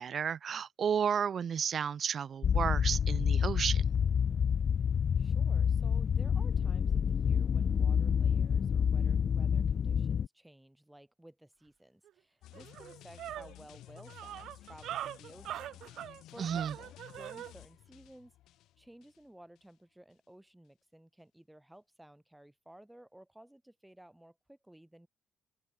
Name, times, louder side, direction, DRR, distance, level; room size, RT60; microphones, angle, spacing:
voice 1, 0.0-3.9 16.4-16.7, right 7 dB, 55° right, 1.1 m, -32 dB
sound 1, 2.4-10.3, left 7 dB, 50° left, 0.3 m, -28 dB
voice 2, 5.2-18.3 18.8-25.1, right 1 dB, 5° right, 5.6 m, -56 dB
sound 2, 12.1-12.2 12.5-17.5, right 12 dB, 80° right, 0.4 m, -42 dB
sound 3, 12.4-19.3 19.6-19.7, left 14 dB, 85° left, 4.9 m, -54 dB
cardioid pair, 90°, 0 cm